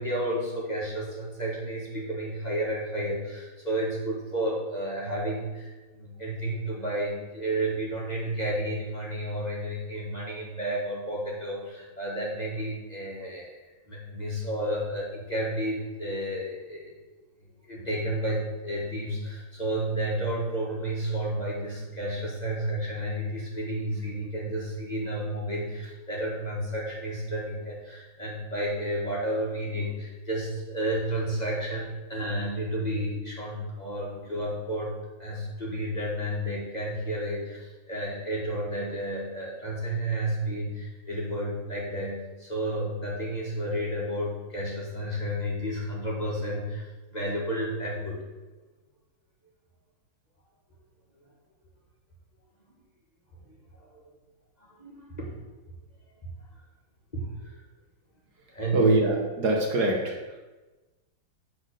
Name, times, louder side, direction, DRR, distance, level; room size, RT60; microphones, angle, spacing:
voice 1, 0.0-17.0 17.7-34.9 35.2-46.8 47.1-48.2 53.8-54.0 54.6-55.3 57.1-57.5 58.5-58.9, right 1 dB, 25° left, -5 dB, 1.6 m, -31 dB
voice 2, 58.7-60.2, right 2 dB, 60° right, 1 dB, 1.6 m, -23 dB
8.8 x 4.0 x 6.4 m, 1.2 s
omnidirectional pair, 2.1 m